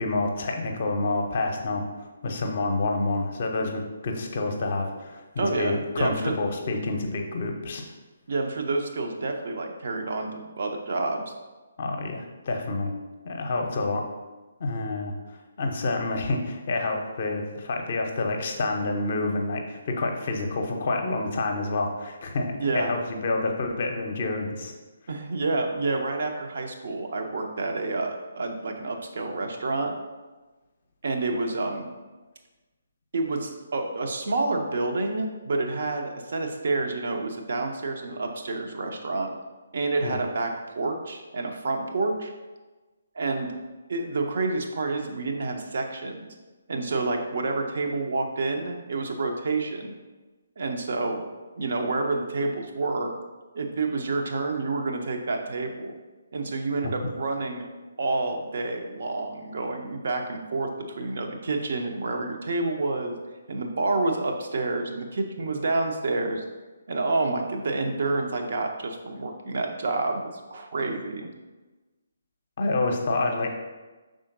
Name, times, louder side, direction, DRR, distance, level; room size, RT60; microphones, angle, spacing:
voice 1, 0.0-7.9 11.8-12.9 13.2-14.0 14.6-24.7 40.0-40.2 72.6-73.5, left 2 dB, 45° left, 3 dB, 0.6 m, -28 dB
voice 2, 5.4-6.4 8.3-11.2 22.6-22.9 25.1-29.9 31.0-31.9 33.1-39.3 39.7-42.3 43.2-43.5 43.9-46.3 46.7-49.9 50.6-51.2 51.6-53.1 53.5-56.0 56.3-57.7 58.0-63.1 63.5-66.4 66.9-71.3, right 3 dB, 50° right, 3 dB, 0.5 m, -28 dB
5.6 x 3.7 x 2.5 m, 1.2 s
figure-of-eight pair, 140°, 0 cm